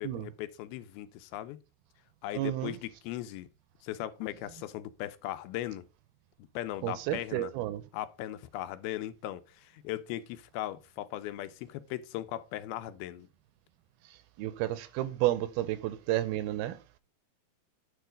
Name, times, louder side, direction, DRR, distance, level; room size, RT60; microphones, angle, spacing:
voice 1, 0.0-1.6 2.2-3.5 3.8-5.9 6.6-7.5 7.9-13.3, left 13 dB, 80° left, 2.4 m, -38 dB
voice 2, 2.3-2.8 6.8-7.8 14.1-16.8, right 14 dB, 80° right, 2.5 m, -31 dB
9.6 x 4.6 x 5.0 m
omnidirectional pair, 4.5 m